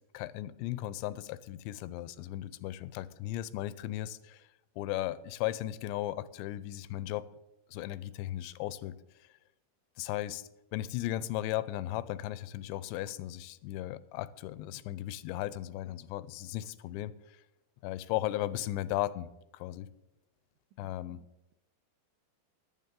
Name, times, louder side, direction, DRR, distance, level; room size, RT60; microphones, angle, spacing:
voice 1, 0.1-4.4 4.8-7.3 7.7-8.9 10.0-17.1 17.8-19.3 19.5-19.9 20.8-21.2, left 14 dB, 85° left, 2.8 m, -36 dB
voice 2, 20.8-21.5, right 8 dB, 90° right, 3.2 m, -61 dB
14.5 x 11.0 x 3.8 m
omnidirectional pair, 5.0 m